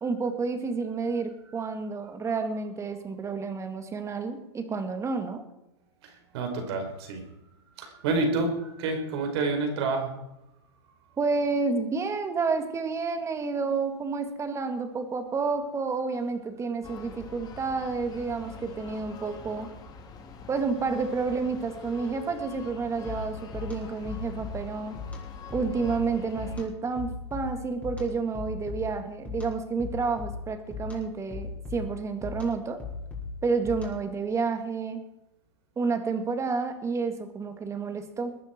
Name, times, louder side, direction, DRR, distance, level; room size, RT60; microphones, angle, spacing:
voice 1, 0.0-5.4 11.2-19.7 20.5-25.0 25.5-32.8 33.4-35.0 35.8-38.4, right 4 dB, 20° right, 7 dB, 2.2 m, -30 dB
voice 2, 6.0-7.2 7.8-10.1, right 3 dB, 65° right, 4 dB, 4.9 m, -29 dB
sound 1, 16.8-26.7, left 5 dB, 25° left, 3.0 m, -45 dB
sound 2, 23.0-34.2, left 4 dB, 10° left, 5.0 m, -39 dB
21.5 x 10.5 x 4.6 m, 0.91 s
hypercardioid pair, 120°, 15 cm